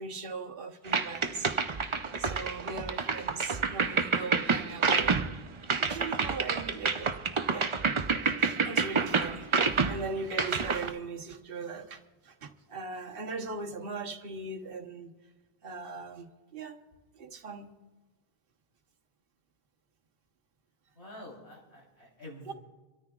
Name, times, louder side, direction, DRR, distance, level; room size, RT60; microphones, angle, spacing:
voice 1, 0.0-1.5 2.2-5.2 5.8-7.2 7.5-7.7 8.2-15.1 15.6-16.8 17.1-17.7 22.5-22.6, right 4 dB, 60° right, 3 dB, 1.2 m, -39 dB
sound 1, 0.9-10.9, right 4 dB, 35° right, 0.5 m, -28 dB
voice 2, 21.0-22.5, left 1 dB, 85° left, -2 dB, 3.9 m, -48 dB
26.0 x 13.5 x 2.4 m, 1.3 s
omnidirectional pair, 1.1 m